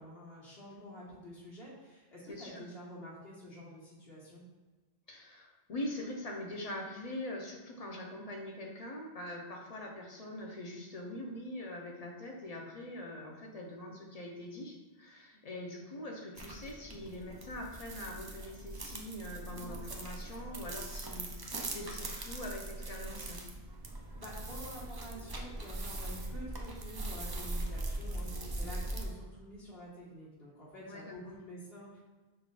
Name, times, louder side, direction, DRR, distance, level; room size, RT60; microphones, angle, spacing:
voice 1, 0.0-4.4 24.2-32.0, equal, 70° left, -7 dB, 1.7 m, -48 dB
voice 2, 2.3-2.6 5.1-23.4 30.8-31.1, left 1 dB, 40° left, 0 dB, 0.7 m, -43 dB
sound 1, 16.4-29.0, right 2 dB, 35° right, 0.3 m, -41 dB
5.4 x 3.7 x 2.4 m, 1.3 s
omnidirectional pair, 1.0 m